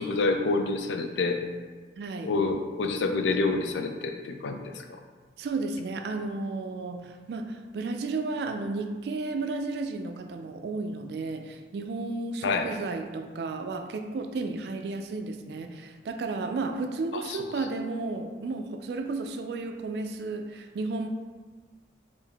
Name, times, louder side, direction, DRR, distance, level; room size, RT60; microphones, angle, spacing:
voice 1, 0.0-1.4 2.2-5.0 12.4-12.7 17.1-17.4, left 3 dB, 90° left, 5 dB, 0.4 m, -28 dB
voice 2, 2.0-2.3 5.4-21.1, right 3 dB, 70° right, 6 dB, 0.3 m, -33 dB
3.5 x 2.6 x 3.4 m, 1.4 s
head